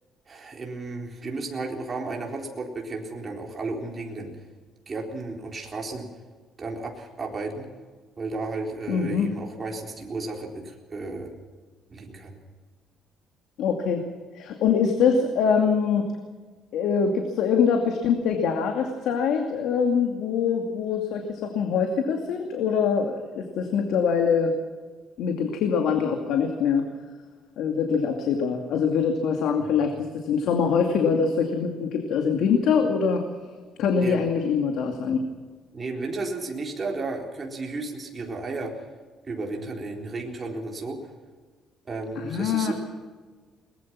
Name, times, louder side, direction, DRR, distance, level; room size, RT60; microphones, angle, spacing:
voice 1, 0.3-4.3 4.9-6.1 6.6-7.7 8.2-11.4 11.9-12.4 29.6-29.8 34.0-34.3 35.7-38.7 39.2-41.0 41.9-42.7, right 3 dB, 25° right, 0 dB, 3.9 m, -33 dB
voice 2, 8.9-9.3 13.6-14.0 14.3-16.0 16.7-24.5 25.2-26.9 27.6-33.2 33.8-35.2 42.2-42.7, left 6 dB, 70° left, 3 dB, 2.4 m, -24 dB
22.0 x 20.0 x 6.1 m, 1.5 s
cardioid pair, 155°, 0 cm